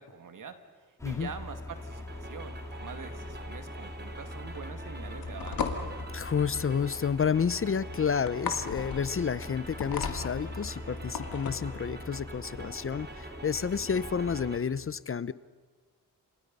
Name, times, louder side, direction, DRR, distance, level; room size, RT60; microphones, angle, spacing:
voice 1, 0.0-5.7, right 6 dB, 65° right, 7 dB, 2.3 m, -44 dB
sound 1, 1.0-14.6, left 1 dB, 10° left, 2.3 m, -42 dB
sound 2, 1.8-14.6, right 3 dB, 30° right, 2.5 m, -47 dB
sound 3, 5.0-11.8, left 6 dB, 90° left, 2.2 m, -37 dB
voice 2, 6.1-15.3, left 6 dB, 40° left, 17 dB, 0.7 m, -30 dB
29.0 x 26.5 x 5.5 m, 1.4 s
cardioid pair, 80°, 34 cm